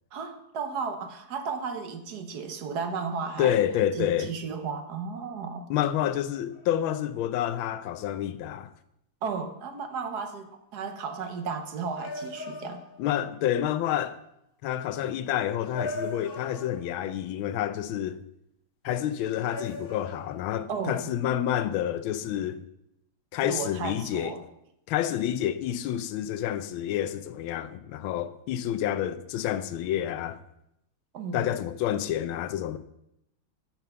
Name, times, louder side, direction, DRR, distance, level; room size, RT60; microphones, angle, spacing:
voice 1, 0.1-3.6 4.0-5.7 9.2-12.8 20.7-21.1 23.4-24.4 31.1-31.5, right 5 dB, 60° right, 1.3 m, -34 dB
voice 2, 3.4-4.3 5.7-8.7 13.0-14.2 14.6-18.2 18.8-22.6 23.3-24.3 24.9-30.4 31.3-32.8, left 11 dB, 80° left, 1.4 m, -29 dB
sound 1, 6.5-6.9 11.1-11.2 11.9-13.3 14.2-14.3 15.7-17.1 19.2-20.7, left 2 dB, 65° left, 0.5 m, -39 dB
9.1 x 5.7 x 6.8 m
omnidirectional pair, 2.2 m